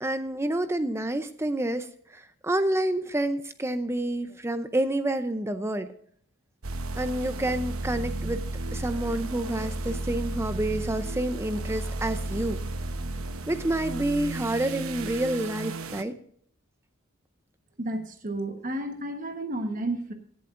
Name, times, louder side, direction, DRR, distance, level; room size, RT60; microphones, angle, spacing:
voice 1, 0.0-1.9 2.4-5.9 7.0-8.4 8.7-12.6 13.5-16.2, right 1 dB, 10° right, 10 dB, 0.6 m, -28 dB
sound 1, 6.6-16.0, right 2 dB, 85° right, 1.0 m, -33 dB
voice 2, 17.8-20.1, right 1 dB, 40° right, 6 dB, 1.2 m, -32 dB
16.5 x 11.5 x 2.5 m, 0.63 s
head